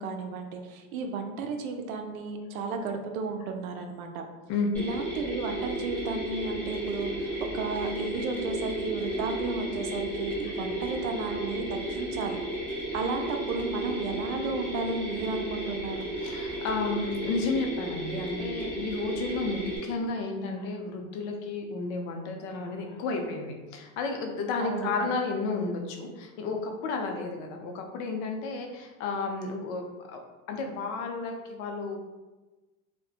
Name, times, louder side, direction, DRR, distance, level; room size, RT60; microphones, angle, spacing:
voice 1, 0.0-4.2 4.8-12.4 12.9-16.1 24.6-25.0, right 4 dB, 85° right, 5 dB, 0.5 m, -33 dB
Mechanisms, 4.7-19.8, right 1 dB, 5° left, 0.5 m, -33 dB
voice 2, 16.2-30.2 30.5-32.0, left 4 dB, 60° left, 3 dB, 0.5 m, -32 dB
2.7 x 2.1 x 2.4 m, 1.2 s
supercardioid pair, 135°, 41 cm